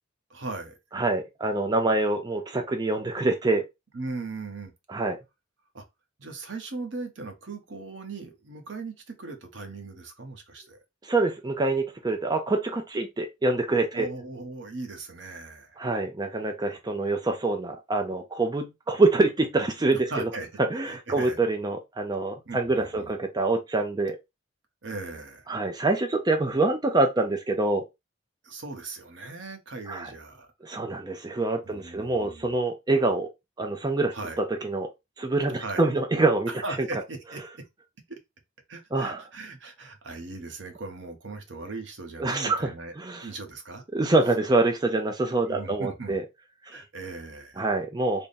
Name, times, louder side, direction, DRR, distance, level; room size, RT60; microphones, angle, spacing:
voice 1, 0.3-0.8 3.9-4.7 5.7-5.8 6.2-10.8 13.9-15.8 19.9-20.5 20.8-21.4 22.5-23.1 24.8-25.5 28.4-30.5 31.6-32.4 34.1-34.4 35.5-35.9 36.5-37.6 38.7-42.9 43.2-43.8 45.4-46.2 46.7-47.6, right 3 dB, 70° right, 0.9 m, -38 dB
voice 2, 0.9-3.6 4.9-5.2 11.0-14.1 15.8-20.3 20.6-24.2 25.5-27.8 29.9-30.1 30.6-33.3 33.6-34.9 35.2-36.5 38.9-39.2 42.2-43.3 43.9-46.2 46.6-46.8 47.6-48.3, right 2 dB, 20° right, 0.5 m, -25 dB
3.5 x 2.1 x 4.0 m
head